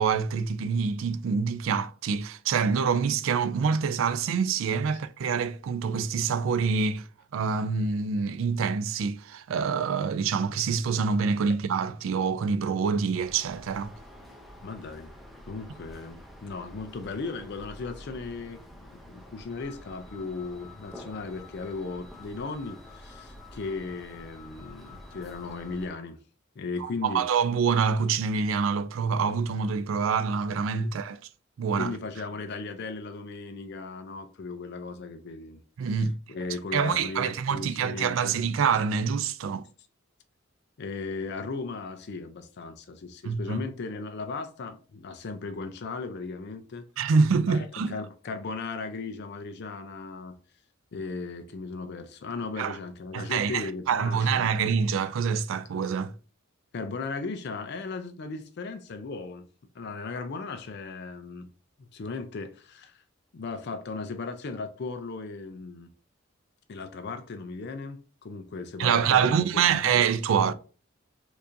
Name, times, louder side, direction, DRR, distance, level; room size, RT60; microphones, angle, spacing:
voice 1, 0.0-7.1 7.3-13.9 26.8-31.2 31.6-31.9 35.8-36.2 36.7-39.7 43.2-43.6 47.0-47.9 52.6-52.8 53.1-56.1 68.8-70.5, right 6 dB, 75° right, 0.3 m, -26 dB
sound 1, 13.1-25.9, left 1 dB, ahead, 0.6 m, -48 dB
voice 2, 14.6-15.1 15.5-26.2 26.6-27.3 30.8-30.9 31.8-36.0 36.3-38.4 40.8-46.8 47.5-50.4 50.9-54.6 56.7-59.4 59.7-61.5 61.8-63.0 63.3-65.9 66.7-69.9 70.3-70.5, left 4 dB, 55° left, 0.5 m, -37 dB
4.6 x 2.5 x 2.6 m
head